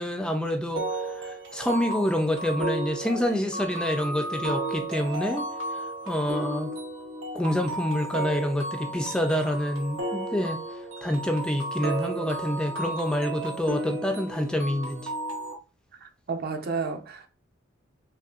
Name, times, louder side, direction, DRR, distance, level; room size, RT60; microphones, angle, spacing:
voice 1, 0.0-6.7 7.3-10.6 11.0-15.1, equal, 5° left, 0.3 m, -27 dB
sound 1, 0.8-15.5, right 2 dB, 75° right, 0.9 m, -33 dB
voice 2, 16.0-17.3, right 4 dB, 50° right, 0.6 m, -32 dB
5.4 x 2.2 x 2.4 m
head